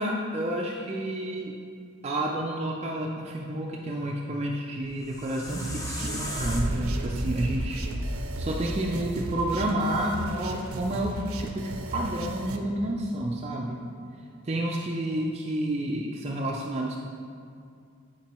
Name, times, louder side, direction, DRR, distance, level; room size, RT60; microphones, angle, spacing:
voice 1, 0.0-1.5 2.0-7.8 8.4-13.8 14.4-17.1, right 1 dB, 30° right, -1 dB, 0.4 m, -30 dB
sound 1, 4.8-9.9, equal, 15° left, 0.6 m, -34 dB
sound 2, 5.5-12.6, right 2 dB, 85° right, 0.6 m, -36 dB
10.5 x 4.4 x 3.0 m, 2.3 s
head